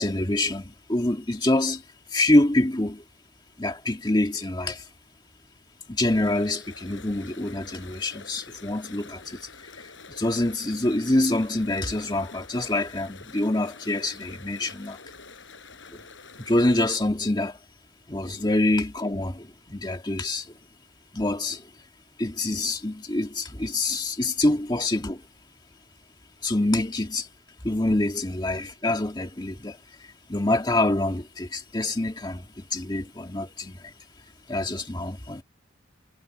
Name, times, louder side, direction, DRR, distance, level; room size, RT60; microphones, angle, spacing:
voice 1, 0.0-1.8 2.1-3.0 3.6-4.9 5.9-15.0 16.4-17.6 18.1-20.5 21.1-21.7 22.2-25.2 26.4-27.3 27.6-33.9 34.5-35.4, left 1 dB, 20° left, 2.0 m, -26 dB
sound 1, 6.1-17.0, left 4 dB, 80° left, 5.6 m, -47 dB
head